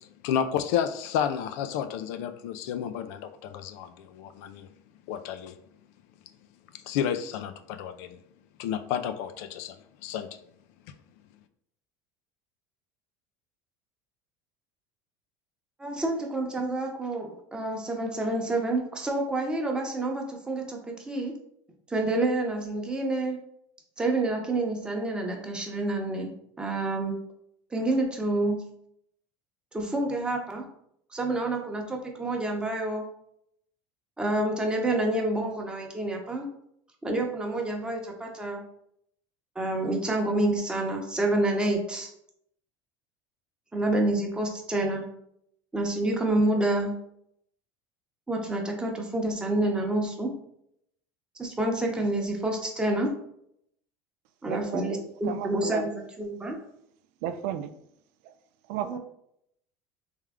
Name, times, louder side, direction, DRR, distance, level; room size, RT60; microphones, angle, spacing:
voice 1, 0.0-4.7 5.1-5.6 6.7-8.2 8.6-10.4, left 9 dB, 75° left, 10 dB, 0.4 m, -31 dB
voice 2, 15.8-21.3 21.9-23.4 24.0-27.2 27.7-28.6 29.7-30.6 31.1-33.0 34.2-36.5 37.0-38.6 39.6-42.1 43.7-45.1 45.7-46.9 48.3-50.3 51.4-53.1 54.4-55.9 56.2-56.6 58.8-59.0, right 2 dB, 10° right, 1 dB, 0.8 m, -28 dB
voice 3, 54.4-55.9 57.2-57.7 58.2-58.3 58.7-59.0, right 10 dB, 75° right, 10 dB, 0.4 m, -34 dB
3.5 x 3.2 x 3.6 m, 0.74 s
supercardioid pair, 135°, 8 cm